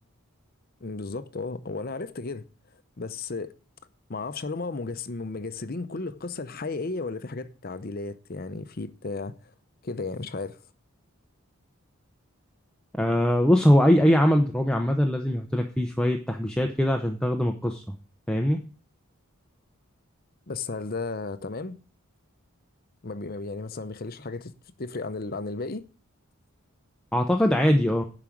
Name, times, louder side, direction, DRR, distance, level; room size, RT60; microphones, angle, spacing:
voice 1, 0.8-2.4 3.0-3.5 4.1-9.5 9.8-10.6 20.5-21.8 23.0-25.9, left 3 dB, 40° left, 0.7 m, -34 dB
voice 2, 13.0-17.8 18.3-18.6 27.1-28.0, equal, 5° left, 0.6 m, -22 dB
11.0 x 5.0 x 7.2 m
head